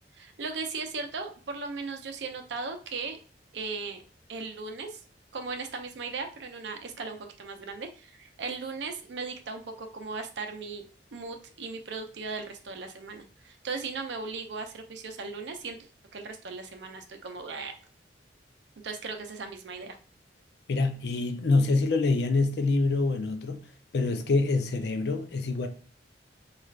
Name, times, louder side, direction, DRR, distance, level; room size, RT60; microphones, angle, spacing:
voice 1, 0.1-3.2 3.5-4.0 4.3-5.0 5.3-10.8 11.1-15.8 16.1-17.7 18.8-20.0, right 4 dB, 70° right, 0.5 m, -37 dB
voice 2, 20.7-23.6 23.9-25.7, left 3 dB, 60° left, 0.4 m, -25 dB
3.2 x 2.4 x 2.3 m
head